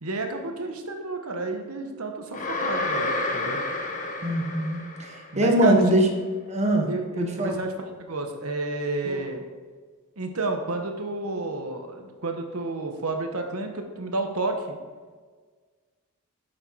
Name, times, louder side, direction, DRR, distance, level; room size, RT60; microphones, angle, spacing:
voice 1, 0.0-3.6 5.3-6.0 6.9-9.4 10.2-14.8, right 3 dB, 80° right, 5 dB, 1.2 m, -31 dB
sound 1, 2.3-5.4, left 2 dB, 35° left, 1.0 m, -30 dB
voice 2, 4.2-6.1 6.5-6.9 7.2-7.6 9.0-9.2, right 1 dB, 30° right, 3 dB, 1.3 m, -22 dB
8.6 x 6.6 x 4.8 m, 1.5 s
head